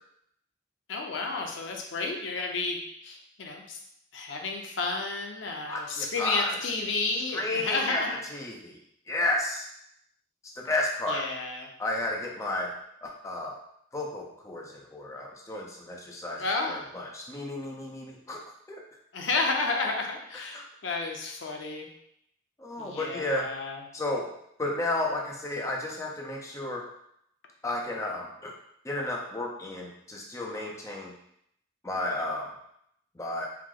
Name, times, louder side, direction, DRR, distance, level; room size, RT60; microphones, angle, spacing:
voice 1, 0.9-3.8 4.1-8.1 11.1-11.7 16.4-16.8 19.1-21.9 22.8-23.8, left 3 dB, 85° left, 2 dB, 0.6 m, -31 dB
voice 2, 5.7-6.6 7.3-8.0 8.3-8.8 9.1-9.7 10.6-11.2 11.8-12.7 13.0-13.6 13.9-18.4 18.7-18.8 20.3-20.6 22.6-23.5 23.9-24.3 24.6-26.8 27.6-28.5 28.8-31.1 31.8-32.6 33.2-33.5, left 2 dB, 15° left, -1 dB, 0.4 m, -32 dB
4.7 x 2.0 x 3.6 m, 0.73 s
head